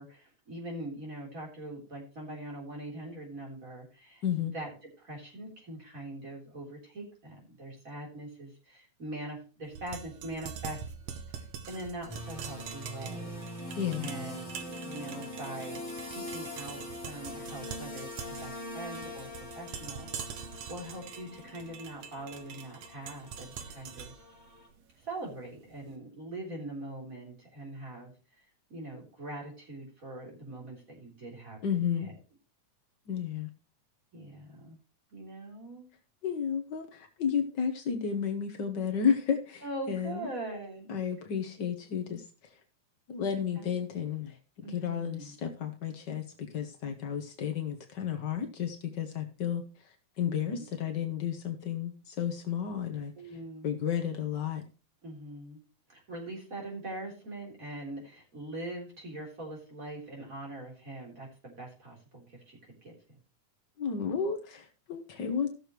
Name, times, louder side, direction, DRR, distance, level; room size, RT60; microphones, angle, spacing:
voice 1, 0.0-19.3 19.6-20.4 20.7-24.1 25.0-28.4 28.7-32.1 34.1-34.8 35.1-35.9 39.6-40.9 43.6-43.7 44.6-45.3 50.2-50.6 53.2-53.8 55.0-55.6 55.9-62.9, right 1 dB, 25° right, -2 dB, 3.8 m, -42 dB
voice 2, 4.2-4.5 13.7-14.1 31.6-32.1 33.1-33.5 36.2-40.3 40.9-42.5 43.1-44.4 44.7-49.6 50.2-53.1 53.6-54.6 63.8-65.6, left 7 dB, 80° left, 5 dB, 0.9 m, -32 dB
sound 1, 9.7-25.7, right 7 dB, 65° right, 2.0 m, -44 dB
sound 2, 12.1-24.7, left 1 dB, 10° left, 3.7 m, -43 dB
16.5 x 6.7 x 3.1 m, 0.33 s
omnidirectional pair, 3.5 m